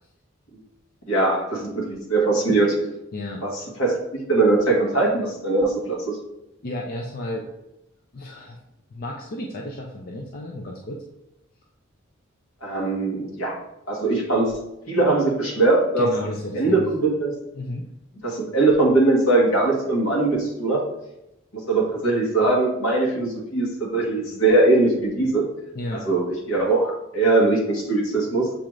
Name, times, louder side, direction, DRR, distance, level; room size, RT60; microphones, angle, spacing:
voice 1, 1.1-2.8 3.4-6.1 12.6-13.6 13.9-14.5 14.9-16.1 16.5-17.3 18.2-20.8 21.7-25.4 25.9-28.5, right 2 dB, 75° left, -2 dB, 1.4 m, -21 dB
voice 2, 3.1-3.4 6.6-7.5 8.1-8.6 8.9-11.0 16.0-16.9 17.5-17.9 25.7-26.1, left 1 dB, 45° left, 0 dB, 0.5 m, -32 dB
6.9 x 2.4 x 3.1 m, 0.87 s
head